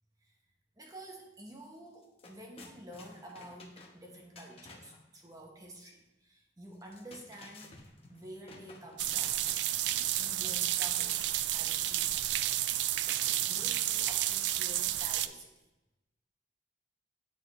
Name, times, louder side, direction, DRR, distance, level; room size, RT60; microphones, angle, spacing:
voice 1, 0.8-7.8 8.1-9.4 9.8-12.5 13.2-15.5, right 1 dB, 20° right, 0 dB, 1.0 m, -49 dB
sound 1, 1.5-1.7 1.9-5.0 6.7-9.9 10.3-11.3 13.0-14.0, left 3 dB, 35° left, 0.9 m, -54 dB
sound 2, 9.0-15.3, right 13 dB, 85° right, 0.3 m, -31 dB
8.5 x 6.5 x 3.0 m, 0.98 s
head